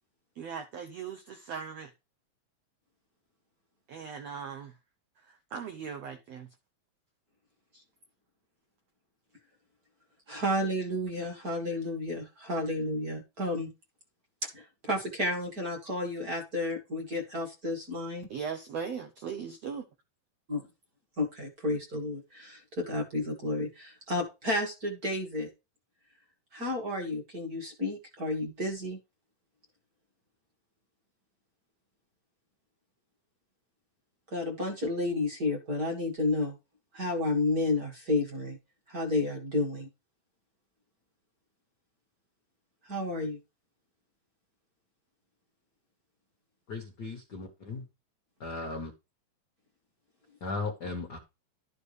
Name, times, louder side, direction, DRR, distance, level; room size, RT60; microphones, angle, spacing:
voice 1, 0.3-1.9 3.9-4.8 5.2-6.5 7.7-7.8 18.3-19.8, right 6 dB, 75° right, 1.5 m, -39 dB
voice 2, 10.3-13.7 14.5-18.3 20.5-20.7 21.2-25.5 26.5-29.0 34.3-36.6 36.9-38.6 38.9-39.9 42.9-43.4, left 2 dB, 35° right, 1.8 m, -31 dB
voice 3, 46.7-47.8 48.4-48.9 50.4-51.2, left 3 dB, 75° left, 0.9 m, -36 dB
12.0 x 6.8 x 3.3 m
omnidirectional pair, 4.1 m